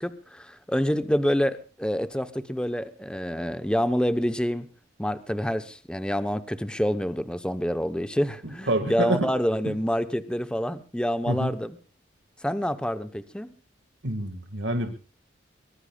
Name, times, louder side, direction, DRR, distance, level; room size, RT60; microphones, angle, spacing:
voice 1, 0.0-4.7 5.0-11.8 12.4-13.5, equal, 5° left, 11 dB, 0.8 m, -27 dB
voice 2, 8.7-9.3 9.7-9.8 11.3-11.5 14.0-14.9, right 1 dB, 65° right, 6 dB, 1.9 m, -27 dB
23.5 x 20.5 x 2.3 m, 0.37 s
head